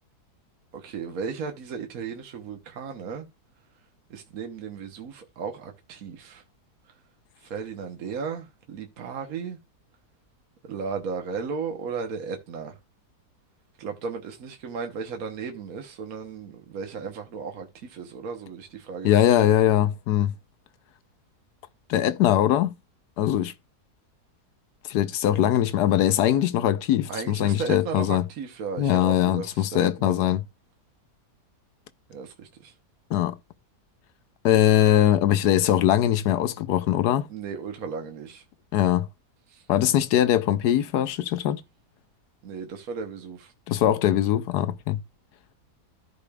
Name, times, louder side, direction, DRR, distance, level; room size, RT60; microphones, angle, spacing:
voice 1, 0.8-3.3 4.1-6.4 7.5-9.6 10.6-12.7 13.8-19.1 19.4-19.6 25.3-25.5 27.1-30.1 32.1-32.7 37.3-38.4 42.4-43.5, right 5 dB, 60° right, 1.5 m, -35 dB
voice 2, 19.0-20.3 21.9-22.7 23.2-23.5 24.8-28.3 28.8-30.4 33.1-33.4 34.4-37.3 38.7-39.1 39.7-41.6 43.7-45.0, left 11 dB, 80° left, 1.3 m, -21 dB
14.0 x 5.0 x 2.3 m
omnidirectional pair, 1.8 m